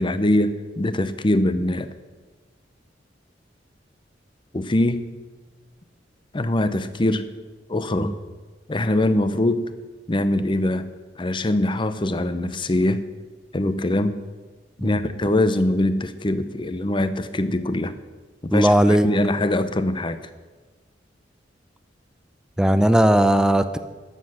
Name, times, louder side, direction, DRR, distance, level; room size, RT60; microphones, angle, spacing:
voice 1, 0.0-1.9 4.5-5.0 6.3-7.3 7.7-8.1 8.7-9.7 10.1-10.9 11.2-13.0 13.5-14.2 14.8-17.9 18.4-20.3, left 1 dB, 30° left, 12 dB, 0.7 m, -22 dB
voice 2, 18.5-19.1 22.6-23.8, right 1 dB, 5° right, 11 dB, 0.5 m, -17 dB
13.0 x 7.8 x 6.4 m, 1.3 s
head